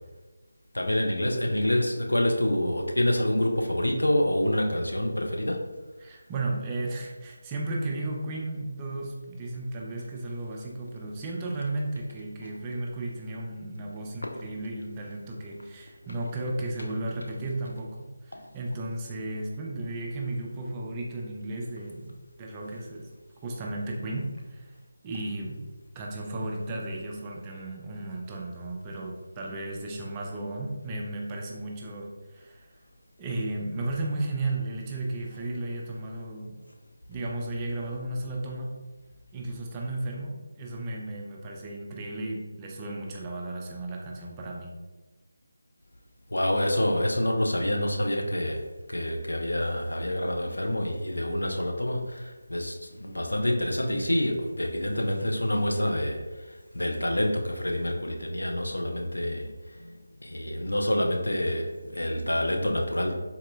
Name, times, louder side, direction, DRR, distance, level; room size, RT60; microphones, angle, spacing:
voice 1, 0.7-5.6 14.2-14.3 18.3-18.4 46.3-48.6 48.9-56.5 56.7-63.1, left 1 dB, 75° left, 2 dB, 0.5 m, -27 dB
voice 2, 6.0-18.0 18.2-22.1 22.4-23.1 23.4-24.7 25.0-25.7 26.0-32.7 33.2-36.5 37.1-38.8 39.3-44.7, right 2 dB, 15° right, -2 dB, 0.4 m, -34 dB
4.0 x 2.6 x 2.2 m, 1.2 s
figure-of-eight pair, 160°, 0 cm